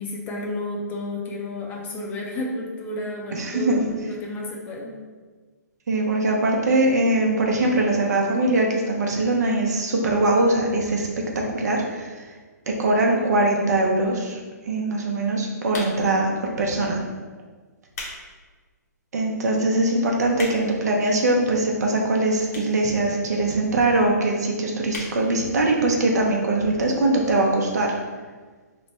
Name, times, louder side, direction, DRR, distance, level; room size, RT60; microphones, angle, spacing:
voice 1, 0.0-5.0, left 1 dB, 20° left, -2 dB, 0.5 m, -31 dB
voice 2, 3.3-3.8 5.9-11.1 11.3-12.3 12.7-17.0 19.1-28.0, right 2 dB, 65° right, 0 dB, 0.7 m, -22 dB
sound 1, 15.7-16.2 17.0-17.2 17.7-18.2 18.6-18.7 19.4-19.5 19.6-19.7 20.0-20.8 21.6-21.7 22.5-22.8 23.1-23.2 23.4-23.5 23.7-23.8 24.1-24.4 24.9-25.2 25.6-25.7 25.8-25.9, left 2 dB, 60° left, 0.9 m, -35 dB
3.1 x 2.1 x 4.2 m, 1.4 s
hypercardioid pair, 140°, 10 cm